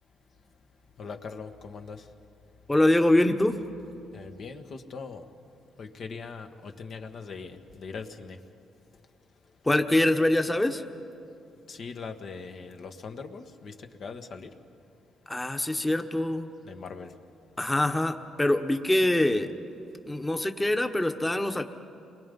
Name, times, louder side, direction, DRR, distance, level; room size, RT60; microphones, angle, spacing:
voice 1, 1.0-2.0 4.1-5.2 5.8-8.4 11.7-14.5 16.6-17.1, left 5 dB, 60° left, 5 dB, 1.4 m, -41 dB
voice 2, 2.7-3.6 9.6-10.8 15.3-16.5 17.6-19.5 20.0-21.6, left 1 dB, 10° left, 7 dB, 1.2 m, -24 dB
29.5 x 22.5 x 5.4 m, 2.6 s
cardioid pair, 90°, 0 cm